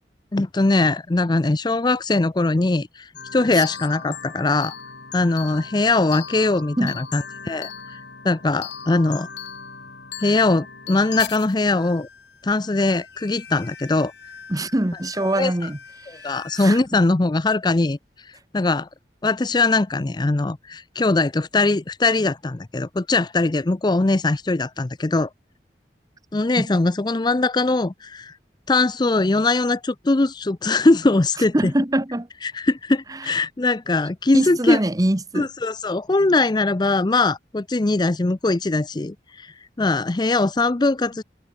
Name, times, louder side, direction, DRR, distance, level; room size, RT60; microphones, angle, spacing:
voice 1, 0.3-4.7 5.1-8.0 8.2-9.3 10.2-12.1 12.4-14.1 15.2-15.5 16.1-18.0 18.3-18.9 19.2-25.3 26.3-28.3 28.7-31.7 32.4-34.8 35.3-41.2, left 2 dB, 25° left, 0.5 m, -21 dB
sound 1, 3.2-16.7, left 7 dB, 80° left, 5.4 m, -39 dB
voice 2, 14.5-15.8 16.1-16.2 16.6-16.8 26.6-26.7 31.5-32.3 33.1-33.3 34.3-35.5, right 1 dB, 20° right, 1.1 m, -23 dB
head